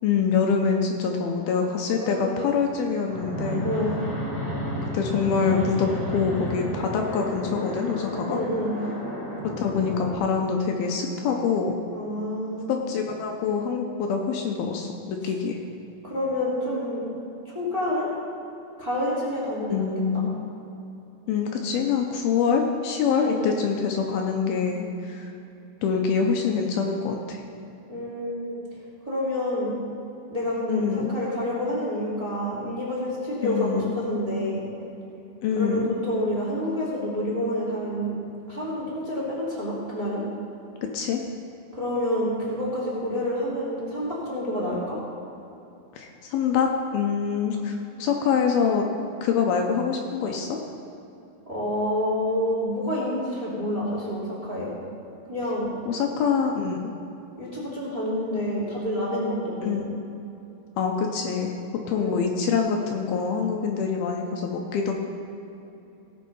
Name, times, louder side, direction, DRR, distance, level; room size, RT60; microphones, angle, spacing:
voice 1, 0.0-3.7 4.9-8.4 9.4-11.8 12.7-15.6 19.7-20.3 21.3-25.3 25.8-27.4 30.7-31.2 33.4-33.9 35.4-36.0 40.9-41.2 46.0-48.8 49.2-50.6 55.9-56.9 59.6-60.0 60.8-61.5 61.9-64.9, left 6 dB, 75° left, 2 dB, 2.6 m, -25 dB
voice 2, 2.0-2.5 3.6-4.0 8.3-8.8 11.9-12.7 16.0-17.0 17.4-18.1 18.8-19.9 20.1-20.2 23.1-23.5 27.9-28.6 29.0-29.7 30.3-34.6 35.5-38.1 38.5-40.2 41.7-45.0 51.5-54.7 55.3-55.7 57.4-59.7 61.9-62.1, left 1 dB, 10° right, -6 dB, 2.6 m, -28 dB
Fixed-wing aircraft airplane, 3.1-10.2, left 1 dB, 15° left, 0.7 m, -31 dB
17.5 x 6.7 x 5.4 m, 2.9 s
omnidirectional pair, 4.6 m